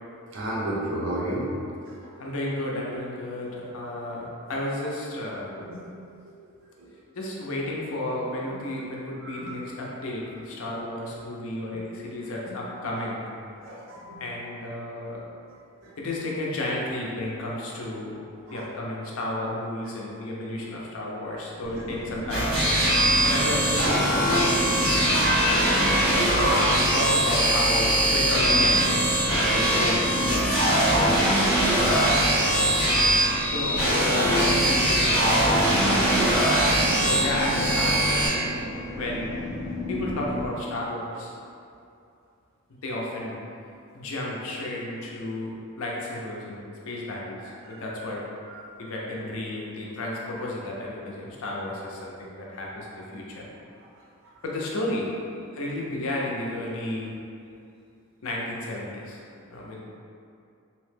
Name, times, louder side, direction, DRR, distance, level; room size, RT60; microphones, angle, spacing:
voice 1, 0.3-1.4 5.6-5.8 6.8-6.9 9.2-9.6 10.7-10.8 13.6-14.2 18.5-18.6 47.7-48.0 48.5-48.7, right 1 dB, 60° right, -5 dB, 0.5 m, -34 dB
voice 2, 2.2-5.5 7.1-13.3 14.2-15.2 16.0-18.2 18.5-22.5 23.2-25.0 26.5-28.8 29.3-32.8 33.4-36.2 36.9-38.6 39.0-39.3 39.9-41.3 42.8-43.4 43.9-48.2 48.8-53.5 54.4-55.1 55.5-57.1 58.2-59.2 59.5-59.8, left 1 dB, 75° left, -3 dB, 0.5 m, -32 dB
sound 1, 21.6-40.5, equal, ahead, 0.3 m, -33 dB
sound 2, 22.3-38.3, right 1 dB, 90° right, 1.4 m, -22 dB
2.8 x 2.1 x 3.2 m, 2.5 s
head